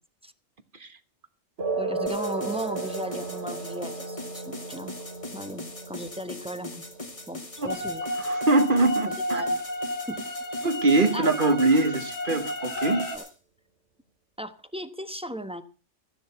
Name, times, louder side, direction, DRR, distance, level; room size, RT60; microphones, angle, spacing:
sound 1, 1.6-8.6, right 3 dB, 60° right, 2.5 m, -35 dB
voice 1, 1.8-5.0 5.3-6.8 7.3-8.0 9.0-9.6 10.1-10.2 11.1-11.6 13.1-13.3 14.4-15.6, equal, 5° right, 0.9 m, -37 dB
sound 2, 2.1-13.3, left 2 dB, 25° left, 1.6 m, -41 dB
sound 3, 7.7-13.2, equal, 60° left, 2.5 m, -31 dB
voice 2, 8.2-9.4 10.6-13.1, right 2 dB, 45° right, 1.4 m, -23 dB
15.0 x 10.5 x 5.6 m
omnidirectional pair, 1.3 m